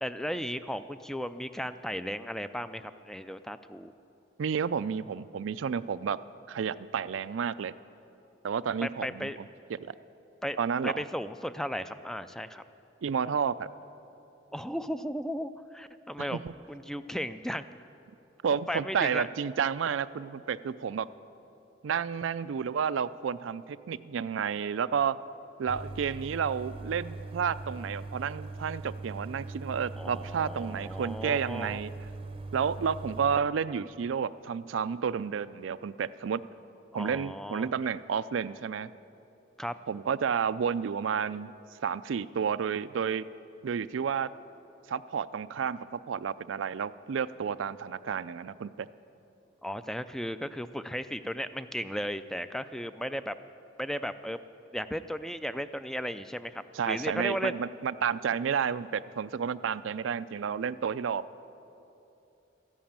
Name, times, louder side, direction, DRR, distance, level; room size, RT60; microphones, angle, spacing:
voice 1, 0.0-3.9 8.8-9.4 10.4-10.6 10.8-12.6 14.5-16.4 16.7-17.7 18.5-19.3 30.0-31.8 36.9-37.7 39.6-39.8 49.6-53.4 53.8-54.4 54.7-57.5, equal, ahead, 12 dB, 0.3 m, -35 dB
voice 2, 4.4-6.2 6.5-7.7 8.4-9.3 9.8-9.9 10.6-11.0 13.0-13.7 16.3-16.5 18.4-21.1 21.8-25.2 25.6-31.9 32.5-36.4 36.9-38.9 39.9-41.5 41.8-43.3 43.6-44.3 44.9-48.9 56.7-61.2, right 7 dB, 80° right, 15 dB, 0.4 m, -31 dB
sound 1, 25.7-33.4, right 3 dB, 30° right, 0.7 m, -41 dB
13.0 x 11.5 x 8.8 m, 2.9 s
head